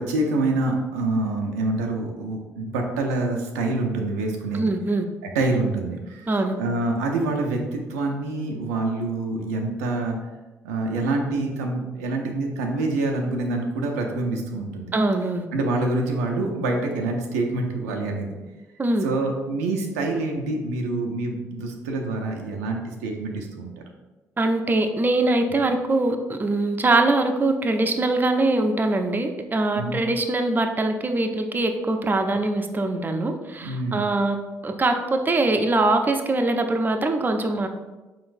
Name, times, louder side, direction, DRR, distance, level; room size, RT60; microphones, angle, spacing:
voice 1, 0.0-4.7 5.2-10.2 10.6-14.9 15.5-18.3 19.0-23.7 29.7-30.0 33.6-34.1, right 2 dB, 85° right, 1 dB, 0.5 m, -26 dB
voice 2, 4.5-5.0 6.3-6.5 14.9-15.5 18.8-19.1 24.4-37.7, right 2 dB, 25° right, 5 dB, 0.5 m, -23 dB
4.4 x 3.9 x 2.6 m, 1.1 s
hypercardioid pair, 50°, 8 cm